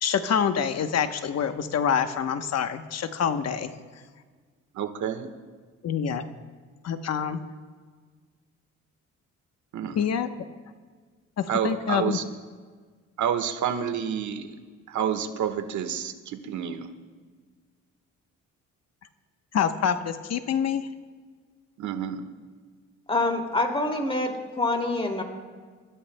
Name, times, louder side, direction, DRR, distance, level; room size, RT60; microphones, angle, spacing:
voice 1, 0.0-3.7 5.8-6.2 6.8-7.4 9.9-10.3 11.4-12.2 19.5-20.9, left 7 dB, 55° left, 9 dB, 1.0 m, -26 dB
voice 2, 4.7-5.3 9.7-10.0 11.5-12.2 13.2-14.5 14.9-16.9 21.8-22.2, right 8 dB, 75° right, 7 dB, 1.4 m, -29 dB
voice 3, 23.1-25.2, left 2 dB, 20° left, 3 dB, 2.4 m, -26 dB
29.0 x 14.0 x 2.2 m, 1.5 s
cardioid pair, 90°, 30 cm